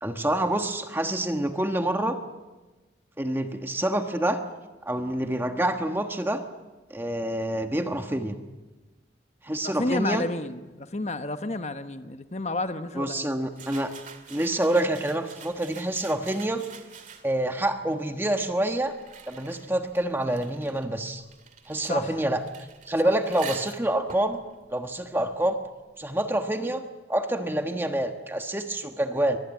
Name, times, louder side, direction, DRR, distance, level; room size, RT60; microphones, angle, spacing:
voice 1, 0.0-2.2 3.2-4.4 4.8-6.4 6.9-8.4 9.4-10.2 13.0-13.9 14.3-16.6 17.2-18.9 19.3-21.2 21.7-22.4 22.9-24.4 24.7-25.6 26.0-26.8 27.1-29.4, right 1 dB, 10° right, 6 dB, 1.2 m, -27 dB
voice 2, 9.6-13.3 21.9-22.2, left 2 dB, 40° left, 9 dB, 1.1 m, -31 dB
sound 1, 13.5-17.5 18.3-25.7, right 7 dB, 45° right, 2.3 m, -46 dB
24.0 x 20.0 x 8.4 m, 1.2 s
head